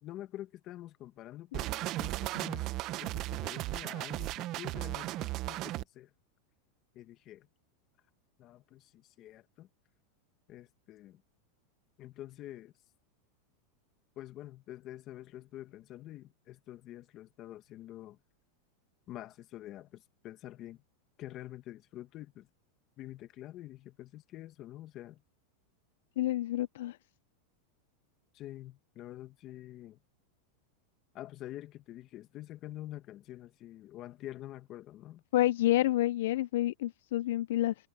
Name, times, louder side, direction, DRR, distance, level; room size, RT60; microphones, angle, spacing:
voice 1, 0.0-2.7 3.0-6.1 6.9-7.5 8.4-9.7 10.5-11.2 12.0-12.7 14.2-18.2 19.1-20.8 21.2-22.5 23.0-25.2 28.3-30.0 31.1-35.2, left 14 dB, 35° left, 1.8 m, -47 dB
sound 1, 1.5-5.8, right 17 dB, 40° right, 0.7 m, -36 dB
voice 2, 26.2-27.0 35.3-37.7, left 15 dB, 70° left, 0.4 m, -28 dB
supercardioid pair, 150°, 0 cm